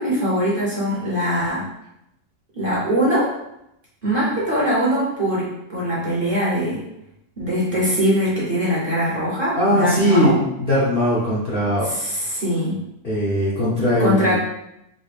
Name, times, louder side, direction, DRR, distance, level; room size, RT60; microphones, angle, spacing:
voice 1, 0.0-1.6 2.5-3.3 4.0-6.8 7.4-10.4 11.8-12.8 14.0-14.4, equal, 40° right, -7 dB, 0.9 m, -22 dB
voice 2, 9.6-11.9 13.0-14.4, equal, 50° left, -8 dB, 0.7 m, -20 dB
4.0 x 2.1 x 3.4 m, 0.84 s
omnidirectional pair, 1.6 m